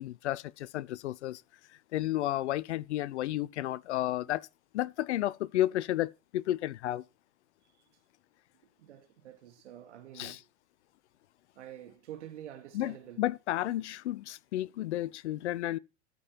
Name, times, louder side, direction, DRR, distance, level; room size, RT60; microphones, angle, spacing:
voice 1, 0.0-1.4 1.9-4.5 4.7-7.0 10.1-10.4 12.7-15.8, left 14 dB, 65° left, 0.6 m, -32 dB
voice 2, 8.8-10.5 11.6-13.2, right 11 dB, 65° right, 2.5 m, -47 dB
13.5 x 5.3 x 4.5 m
hypercardioid pair, 100°, 37 cm